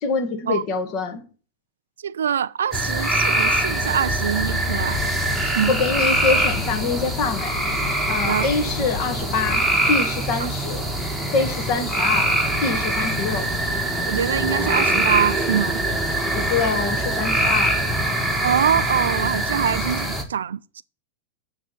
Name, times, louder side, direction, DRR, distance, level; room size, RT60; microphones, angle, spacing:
voice 1, 0.0-1.2 5.7-7.6 8.1-10.9 11.3-12.3 12.6-13.5 16.3-17.8, left 4 dB, 45° left, 1.6 m, -25 dB
voice 2, 2.0-5.0 5.4-5.7 8.2-8.5 14.1-15.8 18.4-20.8, right 8 dB, 90° right, 0.4 m, -24 dB
sound 1, 2.7-20.2, right 1 dB, ahead, 1.7 m, -23 dB
sound 2, 4.4-9.6, left 6 dB, 65° left, 1.0 m, -34 dB
9.4 x 3.4 x 6.9 m
hypercardioid pair, 120°, 0 cm